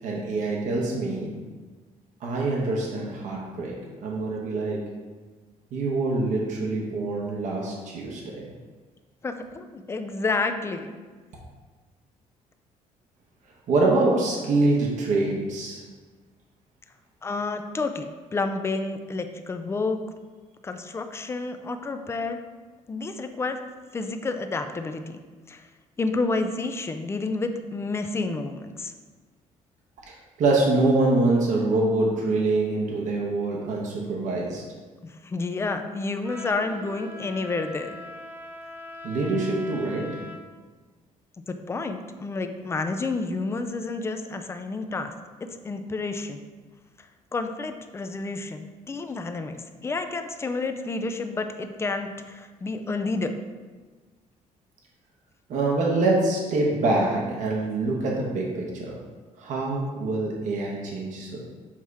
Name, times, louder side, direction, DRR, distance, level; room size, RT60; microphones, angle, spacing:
voice 1, 0.0-1.3 2.2-3.8 4.0-4.9 5.7-8.5 13.7-15.8 30.1-34.6 39.0-40.2 55.5-59.0 59.4-61.4, right 2 dB, 65° right, -2 dB, 1.1 m, -25 dB
voice 2, 9.2-10.9 17.2-20.0 20.6-22.4 22.9-23.6 23.9-25.2 25.5-25.6 26.0-28.9 35.0-37.9 41.5-45.1 45.4-46.4 47.3-49.6 49.8-53.4, left 3 dB, 20° left, 7 dB, 0.4 m, -30 dB
Trumpet, 36.2-40.4, left 1 dB, 15° right, 0.7 m, -41 dB
7.3 x 2.9 x 4.7 m, 1.4 s
cardioid pair, 145°, 14 cm